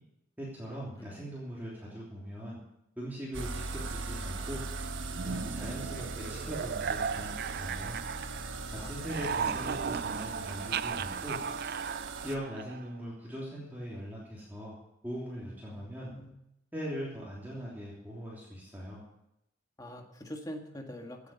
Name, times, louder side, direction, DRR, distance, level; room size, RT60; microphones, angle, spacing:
voice 1, 0.4-2.6 3.0-4.6 5.2-8.0 8.8-11.4 12.2-14.7 15.0-16.1 16.7-19.0, equal, 10° right, -6 dB, 3.2 m, -40 dB
sound 1, 3.3-12.4, right 3 dB, 75° right, 1.2 m, -39 dB
sound 2, 5.1-8.6 8.9-13.0, right 6 dB, 50° right, 0.4 m, -36 dB
voice 2, 15.7-16.3 19.8-21.3, left 1 dB, 20° left, 3 dB, 1.7 m, -44 dB
16.5 x 8.4 x 7.0 m, 0.83 s
head